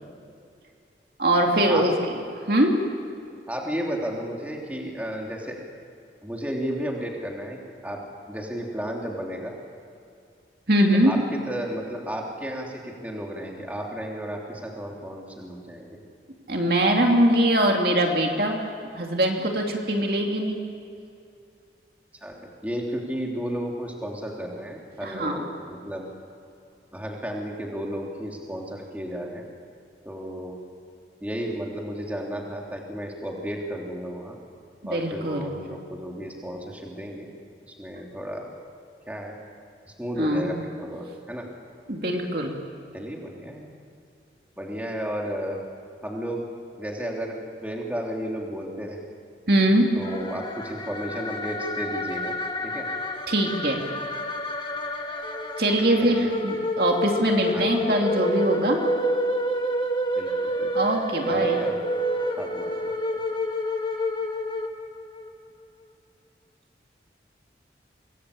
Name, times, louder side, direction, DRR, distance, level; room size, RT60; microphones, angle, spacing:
voice 1, 1.2-2.7 10.7-11.1 16.5-18.6 18.9-20.6 25.0-25.4 34.8-35.6 40.2-40.6 41.9-42.5 49.5-49.9 53.3-53.9 55.6-58.8 60.7-61.6, right 1 dB, 55° right, 1 dB, 2.7 m, -22 dB
voice 2, 3.5-5.6 6.2-8.0 8.3-9.5 11.0-16.0 22.2-22.3 22.6-26.1 26.9-29.4 30.0-30.6 31.2-34.4 34.8-37.3 37.8-38.5 39.1-39.4 39.9-41.5 42.9-43.7 44.6-45.6 46.0-46.4 46.8-49.0 49.9-52.3 52.6-52.9 56.0-56.3 57.5-57.8 60.1-60.7 61.3-61.8 62.4-62.7, equal, 10° right, -1 dB, 3.3 m, -33 dB
sound 1, 50.0-65.3, equal, 25° left, 1.6 m, -29 dB
26.0 x 20.5 x 8.6 m, 2.5 s
head